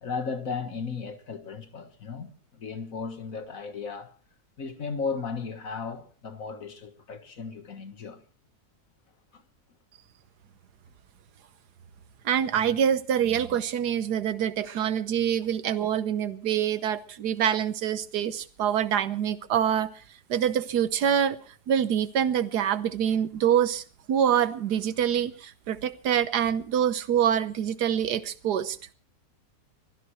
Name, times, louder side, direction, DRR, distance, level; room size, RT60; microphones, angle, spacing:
voice 1, 0.0-4.1 4.6-8.2 9.3-9.4, left 5 dB, 60° left, 1.9 m, -35 dB
voice 2, 12.2-20.0 20.3-21.4 21.7-28.8, right 9 dB, 90° right, 1.5 m, -25 dB
24.0 x 16.0 x 3.2 m
omnidirectional pair, 1.7 m